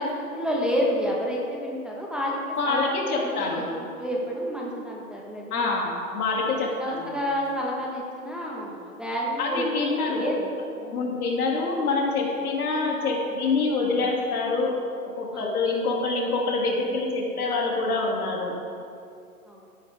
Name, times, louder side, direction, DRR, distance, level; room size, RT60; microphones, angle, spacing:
voice 1, 0.0-5.8 6.8-10.4 10.8-11.2 15.3-15.5 19.5-19.6, equal, ahead, -4 dB, 1.5 m, -30 dB
voice 2, 2.6-3.6 5.5-7.2 9.4-10.3 10.8-14.8 15.2-18.6, left 3 dB, 75° left, -1 dB, 2.9 m, -26 dB
15.0 x 9.6 x 3.7 m, 2.5 s
hypercardioid pair, 125°, 45 cm